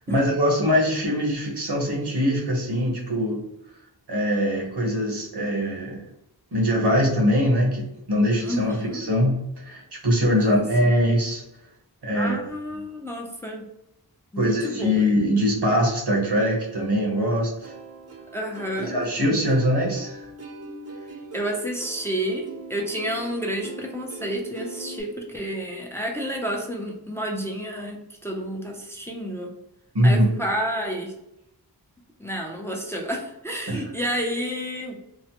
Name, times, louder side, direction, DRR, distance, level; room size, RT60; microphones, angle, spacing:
voice 1, 0.0-3.4 4.1-6.0 6.5-11.4 12.0-12.4 14.4-17.7 18.8-20.2 29.9-30.3 33.7-33.9, equal, 80° right, -2 dB, 1.1 m, -22 dB
voice 2, 8.4-9.0 10.4-10.9 12.1-13.6 14.3-15.1 18.3-18.9 21.3-29.5 30.0-31.1 32.2-35.0, equal, 5° left, 0 dB, 0.5 m, -30 dB
Plucked string instrument, 17.6-25.0, right 3 dB, 40° right, 0.5 m, -41 dB
3.0 x 2.1 x 2.8 m, 0.83 s
wide cardioid pair, 60°, 40 cm